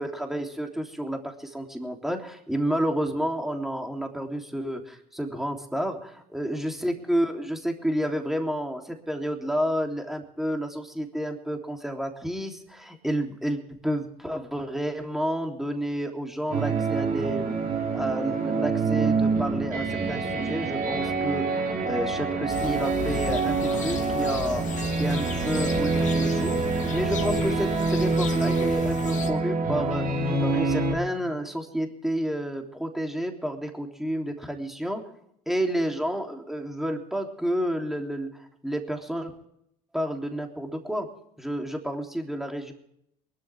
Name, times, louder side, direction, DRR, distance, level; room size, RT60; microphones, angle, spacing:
voice 1, 0.0-17.6 17.9-24.6 25.0-30.1 30.4-35.1 35.5-39.3 39.9-41.1 41.4-42.7, equal, ahead, 3 dB, 3.3 m, -30 dB
sound 1, 16.5-30.9, right 4 dB, 50° right, 4.4 m, -26 dB
sound 2, 22.5-29.3, left 6 dB, 45° left, 2.4 m, -35 dB
22.5 x 13.0 x 3.5 m, 0.72 s
hypercardioid pair, 75°, 18 cm